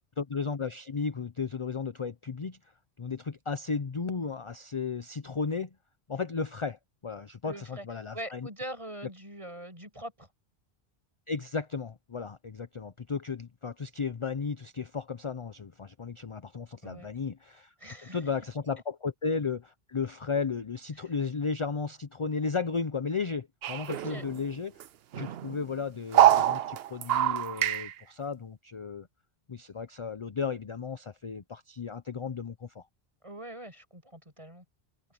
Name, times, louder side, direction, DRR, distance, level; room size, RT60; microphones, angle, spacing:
voice 1, 0.2-2.6 3.0-5.7 6.1-8.5 11.3-17.7 18.1-24.9 25.1-29.1 29.5-32.8, left 5 dB, 35° left, 0.6 m, -34 dB
voice 2, 7.4-7.9 8.1-10.3 16.8-17.1 17.8-18.2 23.9-24.2 33.2-34.6, right 1 dB, 30° right, 6.8 m, -42 dB
sound 1, 23.6-24.5 24.8-24.9 25.1-25.6 26.1-27.9, right 11 dB, 75° right, 0.8 m, -25 dB
open air
omnidirectional pair, 1.1 m